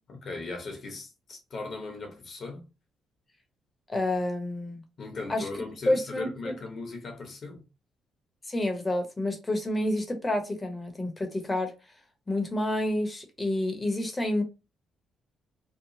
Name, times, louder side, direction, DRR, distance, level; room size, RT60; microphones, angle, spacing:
voice 1, 0.1-2.6 5.0-7.6, left 3 dB, 50° left, 0.9 m, -38 dB
voice 2, 3.9-4.8 5.3-5.5 5.9-6.5 8.5-11.7 12.3-14.4, left 1 dB, 20° left, 0.9 m, -29 dB
2.9 x 2.1 x 2.6 m
cardioid pair, 90°, 0 cm